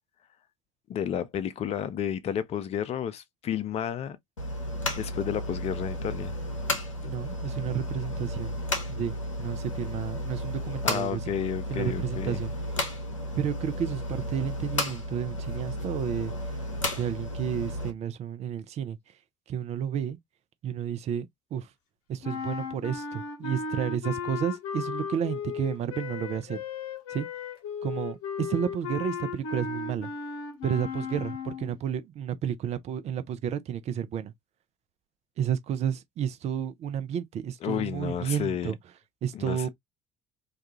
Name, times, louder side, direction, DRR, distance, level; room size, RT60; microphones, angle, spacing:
voice 1, 0.9-4.2 5.0-6.3 7.0-7.1 10.8-12.4 37.6-38.7 39.3-39.7, left 9 dB, 40° left, 0.6 m, -31 dB
sound 1, 4.4-17.9, left 1 dB, 85° left, 0.6 m, -33 dB
voice 2, 7.0-8.6 8.9-11.2 11.7-12.5 13.4-16.3 17.0-19.0 19.5-20.2 20.6-21.7 22.1-26.6 27.1-27.3 27.8-30.1 30.6-34.3 35.4-38.8 39.2-39.7, right 9 dB, 45° right, 0.5 m, -31 dB
sound 2, 22.2-31.8, left 5 dB, 60° left, 0.9 m, -35 dB
2.3 x 2.3 x 2.9 m
figure-of-eight pair, 55°, 16 cm